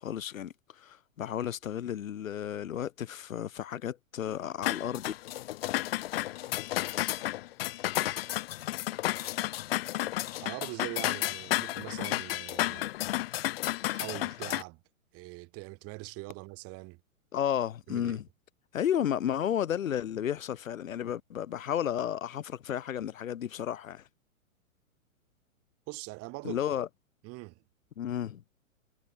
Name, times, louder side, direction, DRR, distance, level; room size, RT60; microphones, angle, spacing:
voice 1, 0.0-5.1 17.3-18.3 18.7-24.1 26.4-26.9 28.0-28.4, left 10 dB, 70° left, 1.1 m, -32 dB
sound 1, 4.6-14.6, left 15 dB, 45° left, 0.6 m, -32 dB
voice 2, 10.4-12.9 13.8-14.8 15.1-17.0 17.9-18.2 25.9-26.6 27.2-27.6, right 24 dB, 35° right, 3.4 m, -42 dB
figure-of-eight pair, 110°, 42 cm